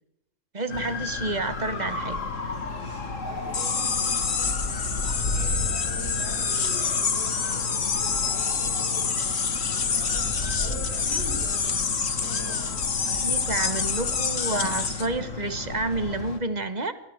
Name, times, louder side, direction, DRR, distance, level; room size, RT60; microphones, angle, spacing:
voice 1, 0.5-2.3 13.2-16.9, right 2 dB, 35° right, 12 dB, 1.4 m, -29 dB
sound 1, 0.7-16.4, left 3 dB, 85° left, 2.5 m, -33 dB
voice 2, 2.6-11.8 12.1-12.7, left 1 dB, 75° right, -7 dB, 8.5 m, -43 dB
sound 2, 3.5-15.1, left 5 dB, 60° left, 1.6 m, -27 dB
24.0 x 14.5 x 7.9 m, 0.81 s
omnidirectional pair, 1.3 m